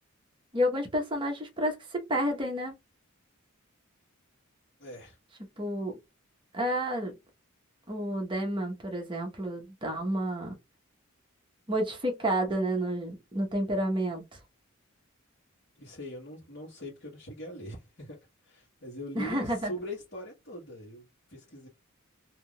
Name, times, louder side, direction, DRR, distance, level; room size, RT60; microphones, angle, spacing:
voice 1, 0.5-2.7 5.6-5.9 6.5-7.1 7.9-10.6 11.7-14.2 19.1-19.7, equal, 25° right, 1.0 m, -30 dB
voice 2, 4.8-5.2 15.8-18.2 18.4-21.7, equal, 50° left, 1.3 m, -42 dB
3.6 x 2.7 x 2.3 m
head